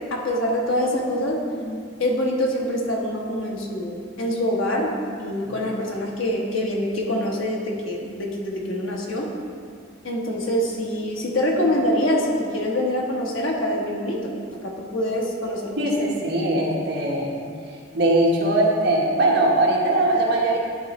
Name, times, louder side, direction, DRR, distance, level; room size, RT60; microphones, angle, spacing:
voice 1, 0.1-9.3 10.0-14.3 14.6-15.8, left 1 dB, 75° left, -1 dB, 1.2 m, -25 dB
voice 2, 15.8-17.3 17.7-20.6, right 1 dB, 55° right, -3 dB, 1.3 m, -21 dB
11.0 x 3.9 x 4.2 m, 2.2 s
head